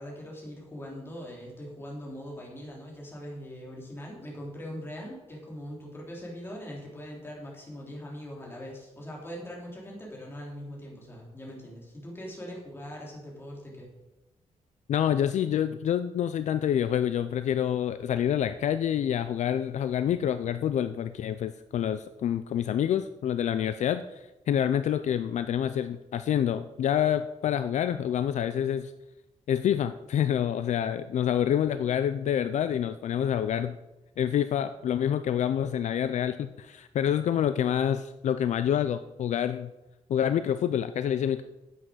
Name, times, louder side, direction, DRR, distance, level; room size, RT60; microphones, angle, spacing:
voice 1, 0.0-13.9, equal, 20° left, -3 dB, 3.3 m, -41 dB
voice 2, 14.9-28.9 29.5-33.8 34.2-39.7 40.1-41.4, left 9 dB, 65° left, 11 dB, 0.4 m, -27 dB
9.6 x 7.9 x 6.3 m, 0.99 s
wide cardioid pair, 170°, 13 cm